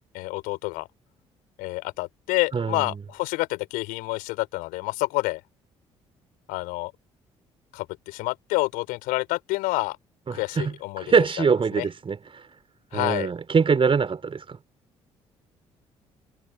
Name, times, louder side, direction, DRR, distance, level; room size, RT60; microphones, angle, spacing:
voice 1, 0.1-0.9 1.6-5.4 6.5-6.9 7.7-10.0 10.3-11.0 11.4-11.5 11.7-11.8 12.9-13.3, left 22 dB, 65° left, 4.3 m, -28 dB
voice 2, 2.5-3.0 10.3-12.4 12.9-14.6, right 5 dB, 35° right, 4.8 m, -24 dB
figure-of-eight pair, 45°, 15 cm